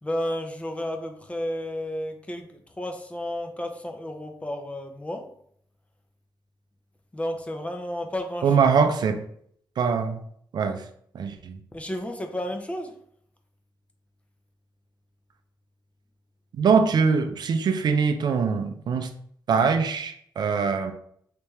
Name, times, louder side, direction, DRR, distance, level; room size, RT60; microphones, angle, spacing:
voice 1, 0.0-5.3 7.1-8.5 11.7-13.0, left 1 dB, 15° left, 5 dB, 0.5 m, -32 dB
voice 2, 8.4-9.2 9.8-10.2 10.5-10.8 11.1-11.6 16.5-19.1 19.5-20.9, right 5 dB, 60° right, 8 dB, 0.4 m, -22 dB
3.3 x 3.3 x 3.0 m, 0.65 s
cardioid pair, 115°, 8 cm